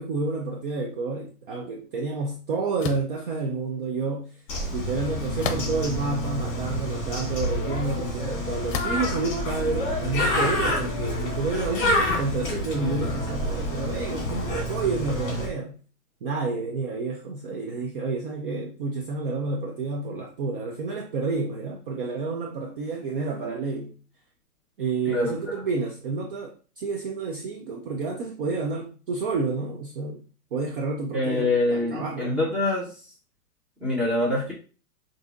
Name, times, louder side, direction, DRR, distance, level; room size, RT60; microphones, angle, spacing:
voice 1, 0.0-4.4 4.7-15.8 16.2-24.0 24.8-30.2 30.5-32.4, right 3 dB, 40° right, 0.4 m, -30 dB
sound 1, 2.8-3.1 5.4-6.0 6.7-6.8 8.7-9.1, left 6 dB, 55° left, 0.7 m, -31 dB
Bird, 4.5-15.5, left 1 dB, 30° left, 2.0 m, -28 dB
voice 2, 31.1-33.0 33.8-34.5, left 2 dB, ahead, 0.9 m, -25 dB
6.4 x 2.7 x 2.4 m
hypercardioid pair, 145°, 46 cm